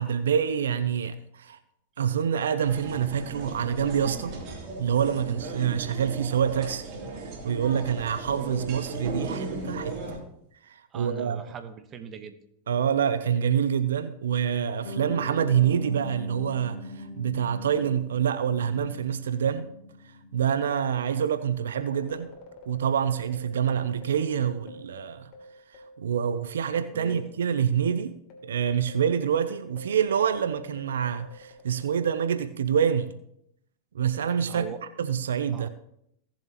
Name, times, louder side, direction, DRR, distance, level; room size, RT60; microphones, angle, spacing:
voice 1, 0.0-1.6 2.0-4.4 4.8-6.8 7.1-9.9 10.6-11.4 12.7-19.7 20.3-22.3 22.7-25.3 25.7-28.1 28.5-33.1 33.9-34.7 35.0-35.7, right 8 dB, 85° right, 12 dB, 0.6 m, -26 dB
sound 1, 2.6-10.2, right 3 dB, 50° right, 3.1 m, -37 dB
voice 2, 10.9-12.4 26.9-27.4 34.5-34.8 35.5-35.7, right 7 dB, 35° right, 9 dB, 1.2 m, -41 dB
Piano, 14.8-21.4, left 2 dB, 75° left, 1.7 m, -41 dB
sound 2, 21.8-26.6 26.8-26.9 27.6-32.3, left 1 dB, 50° left, 3.0 m, -47 dB
17.5 x 7.3 x 3.0 m, 0.75 s
hypercardioid pair, 105°, 0 cm